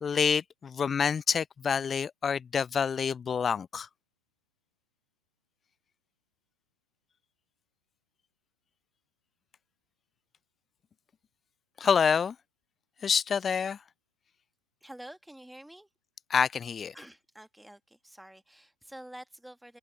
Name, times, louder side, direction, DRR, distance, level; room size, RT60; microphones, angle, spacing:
voice 1, 0.0-3.9 11.8-12.3 13.0-13.8 16.3-16.9, left 6 dB, 20° left, 0.4 m, -27 dB
voice 2, 14.8-15.9 16.9-19.8, right 1 dB, ahead, 2.0 m, -48 dB
open air
figure-of-eight pair, 105°, 0 cm